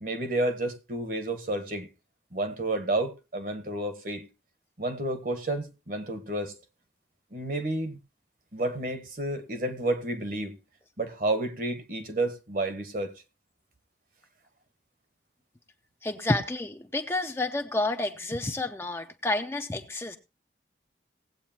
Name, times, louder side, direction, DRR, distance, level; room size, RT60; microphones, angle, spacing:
voice 1, 0.0-1.9 2.3-4.3 4.8-6.6 7.3-8.0 8.5-10.6 11.0-13.1, right 2 dB, 50° right, 1.4 m, -30 dB
voice 2, 16.0-20.2, left 2 dB, 15° left, 0.7 m, -30 dB
18.5 x 8.3 x 2.8 m
head